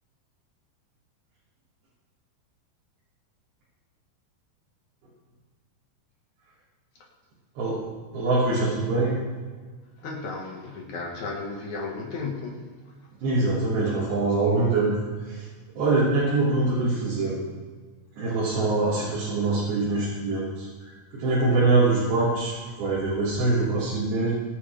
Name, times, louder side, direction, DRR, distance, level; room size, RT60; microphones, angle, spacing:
voice 1, 7.6-7.9 8.1-9.2 13.2-15.0 15.3-15.5 15.8-17.4 18.2-24.3, right 3 dB, 85° right, -10 dB, 5.3 m, -24 dB
voice 2, 10.0-13.0 18.2-18.3, left 3 dB, 55° left, 0 dB, 2.7 m, -35 dB
24.5 x 9.6 x 3.5 m, 1.5 s
omnidirectional pair, 4.7 m